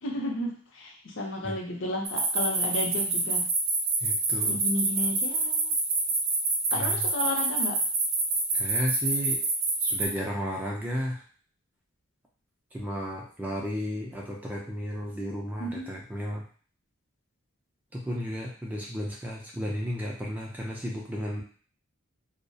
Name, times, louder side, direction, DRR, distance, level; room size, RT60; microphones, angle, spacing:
voice 1, 0.0-3.5 4.5-5.7 6.7-7.8 15.6-15.9, left 1 dB, 65° left, 0 dB, 0.6 m, -33 dB
sound 1, 2.0-10.0, right 3 dB, 50° right, 0.6 m, -26 dB
voice 2, 4.0-4.6 6.7-7.1 8.5-9.4 9.8-11.2 12.7-16.5 17.9-21.4, equal, 10° right, -3 dB, 0.3 m, -33 dB
2.3 x 2.0 x 2.7 m, 0.43 s
head